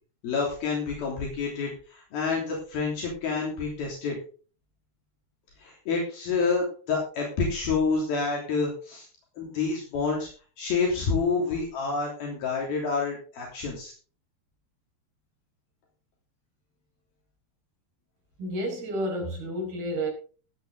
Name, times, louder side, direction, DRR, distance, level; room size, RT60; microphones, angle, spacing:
voice 1, 0.2-4.2 5.6-9.1 9.4-10.3 10.6-13.9, left 4 dB, 65° left, -2 dB, 5.1 m, -28 dB
voice 2, 18.4-20.1, right 1 dB, 65° right, 2 dB, 6.3 m, -30 dB
16.0 x 10.0 x 3.8 m, 0.38 s
omnidirectional pair, 4.7 m